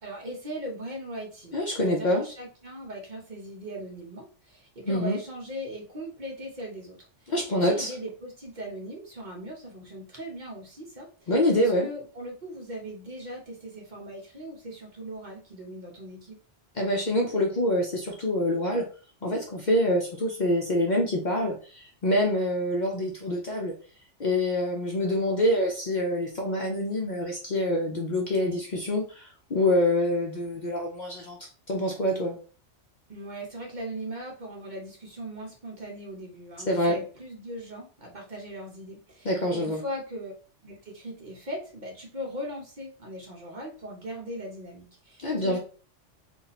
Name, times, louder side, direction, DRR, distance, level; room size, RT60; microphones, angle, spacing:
voice 1, 0.0-16.4 33.1-40.3 40.6-45.6, right 1 dB, 45° right, -1 dB, 0.9 m, -39 dB
voice 2, 1.5-2.2 4.8-5.2 7.3-7.9 11.3-11.9 16.8-18.8 19.2-23.7 24.2-32.4 36.7-37.0 39.2-39.8 45.2-45.6, left 1 dB, 45° left, 0 dB, 0.7 m, -26 dB
2.7 x 2.6 x 4.0 m, 0.38 s
omnidirectional pair, 1.2 m